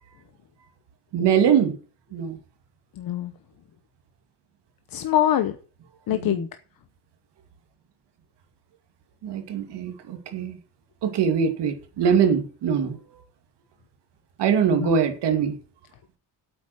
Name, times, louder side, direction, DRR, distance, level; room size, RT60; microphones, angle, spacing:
voice 1, 1.1-1.8 2.1-2.4 6.1-6.4 9.2-10.6 11.0-13.0 14.4-15.5, right 7 dB, 75° right, 6 dB, 2.6 m, -22 dB
voice 2, 3.0-3.3 4.9-5.6 6.1-6.5 14.6-14.9, left 11 dB, 55° left, 9 dB, 1.0 m, -24 dB
8.8 x 8.4 x 7.8 m, 0.40 s
cardioid pair, 175°, 41 cm